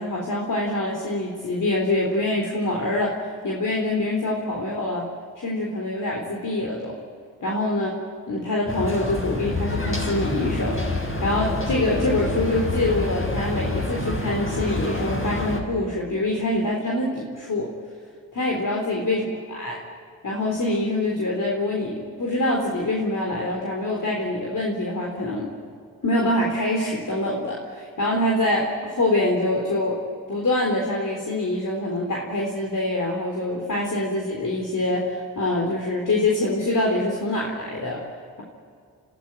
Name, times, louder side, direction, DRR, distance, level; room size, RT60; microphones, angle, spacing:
voice 1, 0.0-3.1 3.4-5.1 5.4-6.9 7.4-8.0 8.3-17.7 18.3-19.8 20.2-25.5 26.0-30.0 30.3-38.0, left 1 dB, 50° left, -2 dB, 4.0 m, -25 dB
sound 1, 8.7-15.6, left 2 dB, 30° left, 7.3 m, -27 dB
26.0 x 14.5 x 9.2 m, 2.3 s
supercardioid pair, 45°, 39 cm